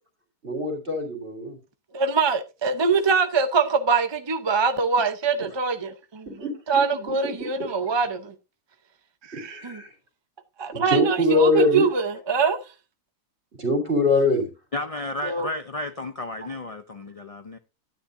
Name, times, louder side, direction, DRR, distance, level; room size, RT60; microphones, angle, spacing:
voice 1, 0.4-1.6 5.4-5.5 6.3-6.5 9.3-9.9 10.7-11.9 13.6-14.5, left 2 dB, 45° right, 3.0 m, -23 dB
voice 2, 1.9-6.3 6.7-8.3 9.2-9.3 9.6-9.8 10.6-12.6 15.2-15.5, right 5 dB, 30° right, 0.5 m, -23 dB
voice 3, 14.7-17.6, left 2 dB, 70° left, 0.3 m, -32 dB
11.0 x 9.9 x 2.6 m
omnidirectional pair, 1.5 m